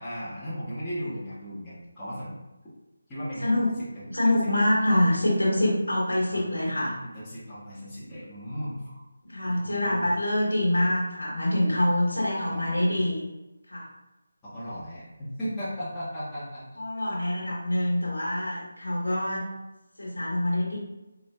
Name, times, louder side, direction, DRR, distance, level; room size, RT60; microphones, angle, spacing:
voice 1, 0.0-2.4 3.1-4.5 6.3-6.4 7.0-9.0 9.4-10.1 12.4-13.1 14.4-16.8, equal, 10° left, -13 dB, 0.9 m, -37 dB
voice 2, 3.4-3.8 4.1-7.0 9.2-13.3 13.7-13.9 16.8-19.5 20.0-20.8, left 1 dB, 80° left, -5 dB, 1.1 m, -25 dB
4.2 x 2.1 x 2.2 m, 1.0 s
figure-of-eight pair, 160°, 0 cm